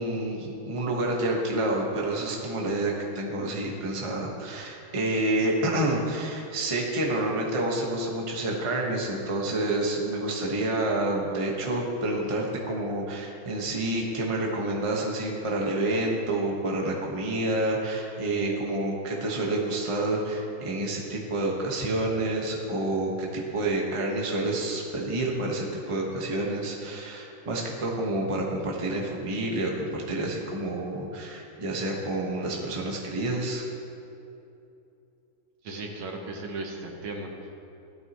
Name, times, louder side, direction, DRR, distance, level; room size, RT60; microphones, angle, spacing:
voice 1, 0.0-33.6, right 1 dB, 20° right, -2 dB, 1.1 m, -28 dB
voice 2, 35.6-37.5, right 2 dB, 70° right, 1 dB, 2.0 m, -36 dB
15.5 x 12.5 x 3.1 m, 2.7 s
omnidirectional pair, 2.4 m